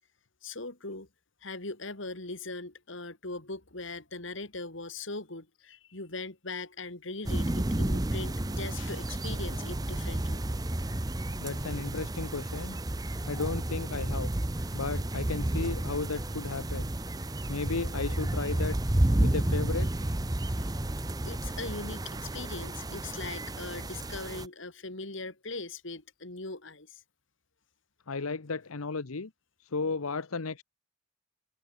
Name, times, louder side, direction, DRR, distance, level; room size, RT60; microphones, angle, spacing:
voice 1, 0.4-1.1 1.4-10.4 14.6-14.8 20.3-21.0 21.2-27.0, left 3 dB, 60° left, 2.8 m, -40 dB
sound 1, 7.2-24.5, right 1 dB, 15° right, 0.7 m, -31 dB
voice 2, 11.4-12.8 13.3-14.3 14.7-16.9 17.5-18.8 19.2-20.1 28.1-29.3 29.6-30.6, left 4 dB, 85° left, 1.0 m, -34 dB
head